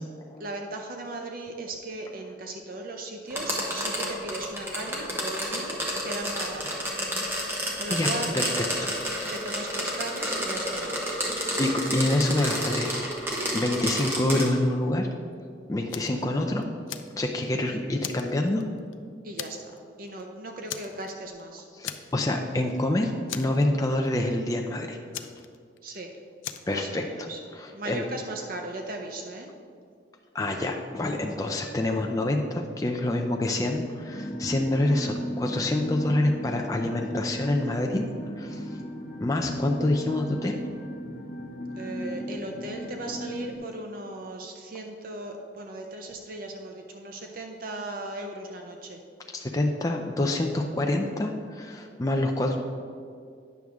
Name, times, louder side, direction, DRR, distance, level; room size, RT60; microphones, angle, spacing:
voice 1, 0.4-6.8 7.8-8.3 8.9-9.0 9.3-11.1 19.2-19.7 20.0-22.1 25.8-26.1 26.7-27.4 27.7-29.5 41.8-49.0, right 2 dB, 50° right, 3 dB, 0.6 m, -37 dB
sound 1, 3.3-14.5, equal, 10° right, 1.0 m, -30 dB
voice 2, 8.3-8.9 11.6-15.1 15.7-16.6 17.2-18.6 21.7-25.0 26.7-27.3 27.6-28.0 30.3-38.0 38.4-38.8 39.2-40.6 49.3-52.5, left 1 dB, 20° left, 2 dB, 0.4 m, -27 dB
Fire, 15.9-16.2 16.6-17.6 18.0-18.9 19.4-19.8 20.1-20.2 20.7-21.4 21.8-22.4 22.7-22.8 23.3-24.1 25.1-26.0 26.4-26.8, left 10 dB, 85° left, 0.4 m, -38 dB
sound 2, 34.1-43.6, equal, 45° left, 0.7 m, -36 dB
9.2 x 6.2 x 3.5 m, 2.2 s
head